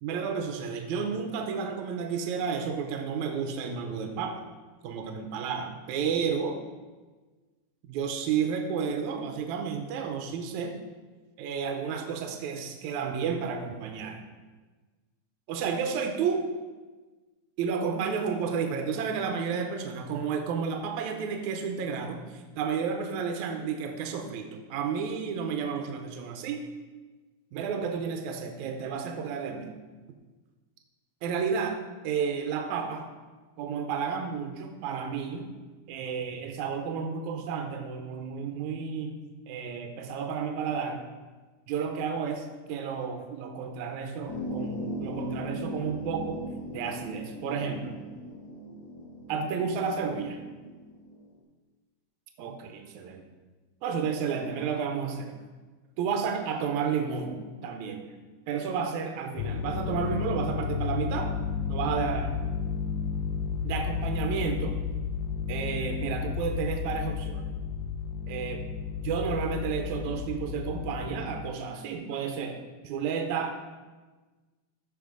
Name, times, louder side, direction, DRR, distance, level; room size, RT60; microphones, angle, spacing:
voice 1, 0.0-4.4 4.8-6.6 7.9-10.8 11.4-14.2 15.5-16.4 17.6-26.7 27.5-29.7 31.2-33.1 33.6-35.5 35.9-39.2 39.5-41.0 41.7-46.5 46.7-48.0 49.3-50.4 52.4-53.2 53.8-55.3 56.0-58.1 58.5-61.3 61.7-62.4 63.6-64.8 65.5-67.5 68.3-68.7 69.0-73.5, right 6 dB, 75° right, 4 dB, 2.1 m, -31 dB
sound 1, 44.3-51.2, equal, 50° left, 1.6 m, -38 dB
sound 2, 59.4-71.5, left 6 dB, 80° left, 1.7 m, -32 dB
13.5 x 5.3 x 3.9 m, 1.3 s
omnidirectional pair, 3.5 m